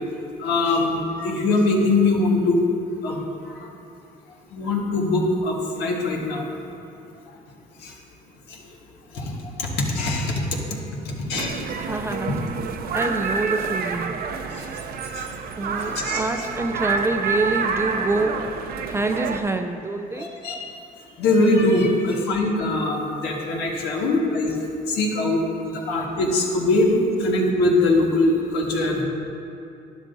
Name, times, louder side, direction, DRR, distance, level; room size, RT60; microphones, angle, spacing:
voice 1, 0.4-2.6 3.0-3.2 4.5-6.4 7.8-7.9 9.1-9.3 9.6-10.4 11.3-11.6 14.5-14.6 15.1-15.2 15.8-16.5 20.2-20.6 21.2-24.6 24.9-29.1, left 2 dB, 85° left, -1 dB, 1.6 m, -22 dB
sound 1, 11.3-19.4, right 5 dB, 65° right, 0.7 m, -28 dB
voice 2, 11.8-12.4 12.9-14.1 15.6-18.4 18.9-20.3, right 2 dB, 15° right, 5 dB, 0.4 m, -26 dB
12.0 x 11.0 x 2.7 m, 2.6 s
cardioid pair, 110°, 17 cm